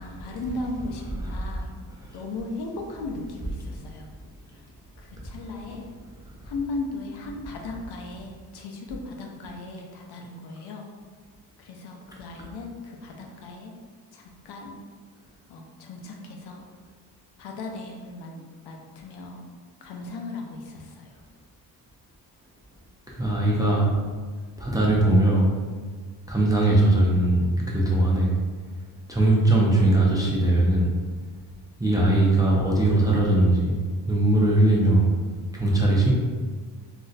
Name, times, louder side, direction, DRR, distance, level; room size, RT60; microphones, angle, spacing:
voice 1, 0.0-1.7 2.1-4.1 4.5-4.6 5.0-5.9 6.4-10.9 11.6-13.7 14.1-14.7 15.5-16.7 17.4-19.5 19.8-21.2, left 2 dB, 75° left, 1 dB, 0.6 m, -37 dB
voice 2, 23.1-23.9 24.6-25.5 26.3-28.3 29.1-30.9 31.8-33.8 34.1-35.1 35.5-36.1, right 1 dB, 10° right, -5 dB, 0.4 m, -20 dB
2.5 x 2.1 x 3.8 m, 1.5 s
cardioid pair, 120°, 40 cm